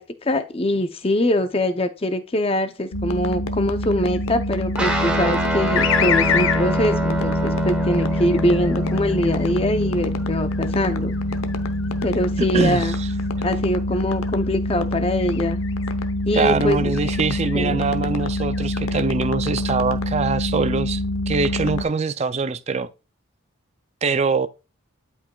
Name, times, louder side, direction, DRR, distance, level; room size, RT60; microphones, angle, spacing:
voice 1, 0.0-11.1 12.0-12.9 13.4-15.6 16.3-16.9 17.5-17.8, left 1 dB, 25° left, 0.6 m, -23 dB
sound 1, 2.9-21.8, left 1 dB, 85° left, 0.9 m, -26 dB
sound 2, 4.0-4.7 5.8-6.6 7.6-9.5 10.2-13.5 13.9-14.3 15.2-16.1 16.9-17.6 18.1-19.0, left 8 dB, 65° left, 0.6 m, -29 dB
Guitar, 4.8-13.5, equal, 5° right, 1.1 m, -27 dB
voice 2, 12.5-13.1 13.4-13.5 16.3-22.9 24.0-24.5, right 4 dB, 30° right, 0.4 m, -23 dB
11.5 x 5.2 x 2.3 m
head